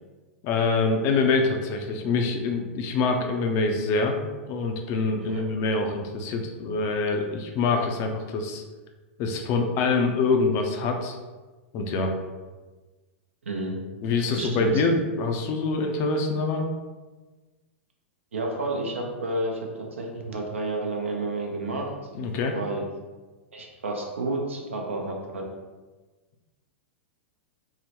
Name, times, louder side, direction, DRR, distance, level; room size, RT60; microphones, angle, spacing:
voice 1, 0.4-4.2 4.5-8.6 9.2-11.2 11.7-12.2 14.0-16.7 22.1-22.6, left 3 dB, 40° left, 4 dB, 0.4 m, -25 dB
voice 2, 13.4-13.8 14.3-14.8 18.3-21.9 22.5-22.8 23.5-25.4, right 2 dB, 75° right, 1 dB, 0.6 m, -30 dB
3.7 x 2.1 x 2.9 m, 1.3 s
figure-of-eight pair, 100°, 7 cm